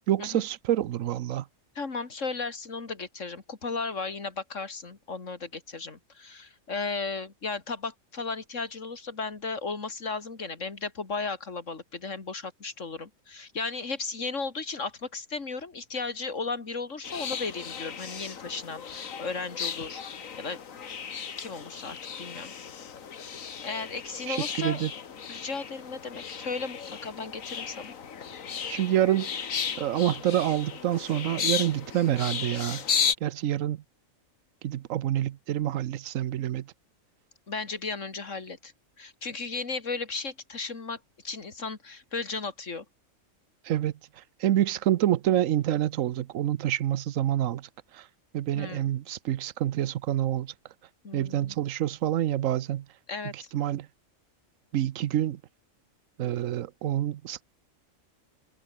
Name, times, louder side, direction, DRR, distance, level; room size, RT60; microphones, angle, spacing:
voice 1, 0.1-1.4 24.3-24.9 28.7-29.3 29.8-32.8 33.2-33.8 34.6-36.7 43.7-43.9 44.4-48.0 48.3-50.5 51.1-52.8 53.3-53.9 54.7-55.4 56.2-57.4, right 12 dB, 80° right, 1.1 m, -27 dB
voice 2, 1.7-20.6 21.4-22.5 23.6-24.8 25.3-27.9 37.5-38.7 39.0-42.8 48.5-48.9 51.0-51.6 53.1-53.5, left 4 dB, 70° left, 2.9 m, -35 dB
sound 1, 17.0-33.1, left 7 dB, 90° left, 1.8 m, -35 dB
omnidirectional pair, 1.4 m